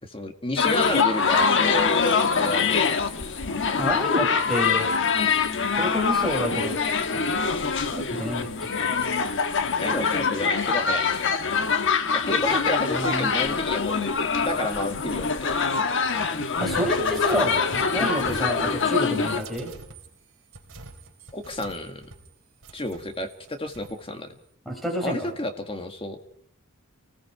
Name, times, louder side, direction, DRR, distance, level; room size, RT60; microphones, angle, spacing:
voice 1, 0.0-3.1 3.6-3.9 9.8-11.1 12.1-14.1 14.4-15.8 18.0-18.1 21.3-22.0 22.7-24.4 25.0-26.2, left 1 dB, 25° left, 6 dB, 1.9 m, -31 dB
sound 1, 0.6-19.4, left 5 dB, 55° left, 1.3 m, -24 dB
voice 2, 3.8-4.9 5.6-7.3 7.9-8.8 12.9-13.3 16.6-17.6 17.9-19.7 24.7-25.3, equal, ahead, 2 dB, 5.6 m, -28 dB
sound 2, 16.5-22.3 22.6-24.0, right 2 dB, 60° right, 3.6 m, -43 dB
30.0 x 19.5 x 4.7 m, 0.65 s
head